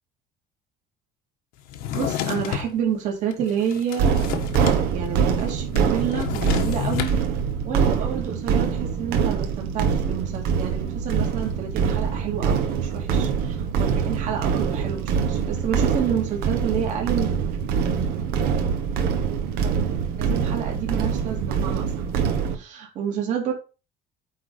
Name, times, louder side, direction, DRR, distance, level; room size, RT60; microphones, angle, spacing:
Drawer open or close, 1.7-2.7 3.3-4.8 5.1-5.2 5.4-7.2, left 10 dB, 70° left, 1.4 m, -29 dB
voice 1, 1.9-4.1 4.8-7.1 7.6-17.3 19.6-19.7 20.2-22.0 22.5-23.5, right 8 dB, 45° right, 0 dB, 2.7 m, -29 dB
sound 1, 4.0-22.6, right 6 dB, 70° right, 1.5 m, -24 dB
9.2 x 4.0 x 5.7 m, 0.32 s
cardioid pair, 175°, 16 cm